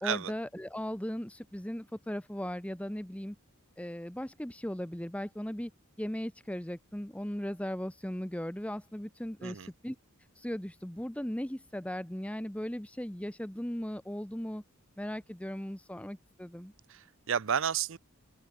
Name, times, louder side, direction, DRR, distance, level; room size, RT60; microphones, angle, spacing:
voice 1, 0.0-3.4 3.8-5.7 6.0-10.0 10.3-14.6 15.0-16.7, equal, 5° left, 0.8 m, -37 dB
voice 2, 16.9-18.0, right 8 dB, 60° right, 0.6 m, -31 dB
open air
head